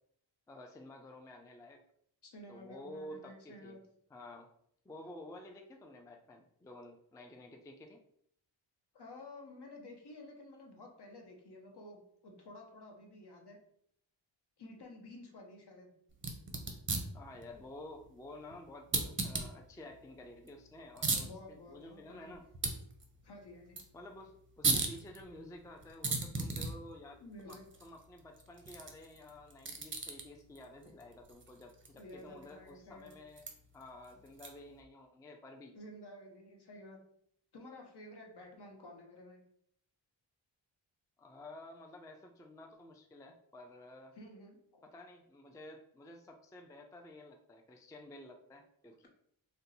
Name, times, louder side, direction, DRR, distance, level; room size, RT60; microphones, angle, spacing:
voice 1, 0.5-1.8 2.5-3.8 4.1-4.5 4.8-8.0 17.1-22.5 23.9-33.4 33.7-35.7 41.2-44.1 44.8-49.1, left 1 dB, 10° left, 3 dB, 0.3 m, -52 dB
voice 2, 2.2-3.8 8.9-13.6 14.6-15.9 21.2-22.3 23.2-23.8 27.2-27.6 32.0-33.1 35.7-37.0 37.5-39.4 44.1-44.8, left 1 dB, 55° left, 1 dB, 1.0 m, -52 dB
sound 1, 16.1-34.8, right 3 dB, 25° right, 0.7 m, -40 dB
2.6 x 2.2 x 3.9 m, 0.69 s
cardioid pair, 55°, 48 cm